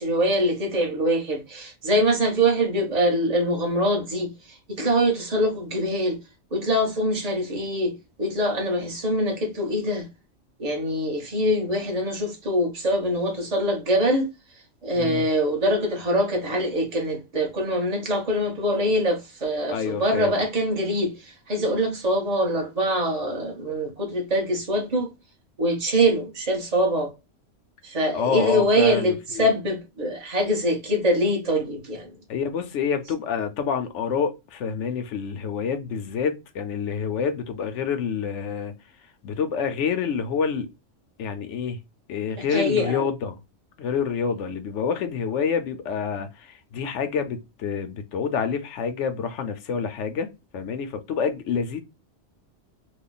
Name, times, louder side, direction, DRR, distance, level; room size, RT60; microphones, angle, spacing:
voice 1, 0.0-6.2 6.5-10.1 10.6-14.3 14.8-25.1 25.6-27.1 27.8-32.1 42.4-43.0, equal, 30° right, 1.2 m, -24 dB
voice 2, 14.9-15.3 19.7-20.3 28.1-29.4 32.3-38.7 39.2-40.7 41.2-41.8 42.1-43.4 43.8-51.8, left 6 dB, 70° left, 1.0 m, -27 dB
3.1 x 2.3 x 3.8 m
omnidirectional pair, 1.3 m